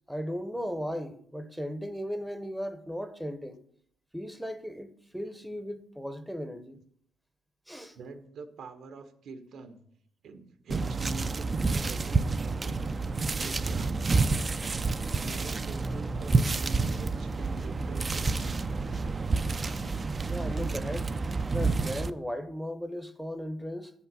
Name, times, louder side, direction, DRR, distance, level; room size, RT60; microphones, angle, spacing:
voice 1, 0.1-3.6 4.1-6.8 7.7-8.0 20.3-21.1 21.4-23.9, equal, ahead, 0.8 m, -36 dB
voice 2, 7.9-9.8 10.2-18.7, right 4 dB, 70° right, 1.1 m, -45 dB
sound 1, 10.7-22.1, right 3 dB, 30° right, 0.4 m, -29 dB
8.2 x 5.7 x 6.1 m
cardioid pair, 90°, 0 cm